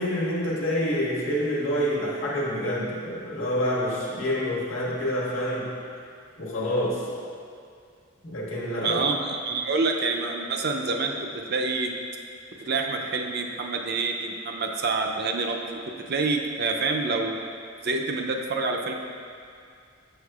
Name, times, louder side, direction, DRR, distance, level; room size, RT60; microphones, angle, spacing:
voice 1, 0.0-5.7 6.4-7.0 8.2-9.0, equal, 90° left, -6 dB, 1.3 m, -27 dB
voice 2, 8.8-11.1 11.5-11.9 12.6-15.8 16.1-17.4 17.8-18.9, right 3 dB, 55° right, 2 dB, 0.5 m, -27 dB
6.8 x 6.4 x 2.4 m, 2.4 s
head